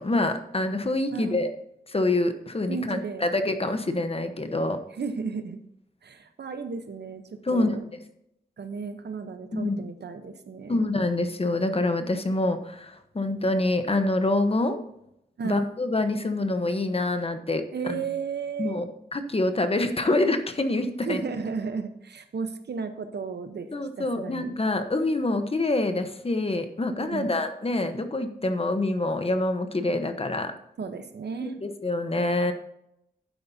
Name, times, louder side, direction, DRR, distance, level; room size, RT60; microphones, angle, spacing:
voice 1, 0.0-1.5 1.9-4.8 7.4-7.7 9.5-9.8 10.7-14.8 15.4-18.0 18.6-18.9 19.1-21.2 23.7-30.5 31.4-32.5, left 2 dB, 35° left, 8 dB, 1.1 m, -26 dB
voice 2, 2.7-3.2 4.9-5.6 6.0-7.8 8.6-10.9 15.4-15.7 17.7-18.8 21.0-23.7 24.0-24.6 27.0-27.4 30.8-31.6, right 5 dB, 80° right, 8 dB, 1.0 m, -34 dB
11.5 x 9.4 x 2.8 m, 0.79 s
wide cardioid pair, 90°, 17 cm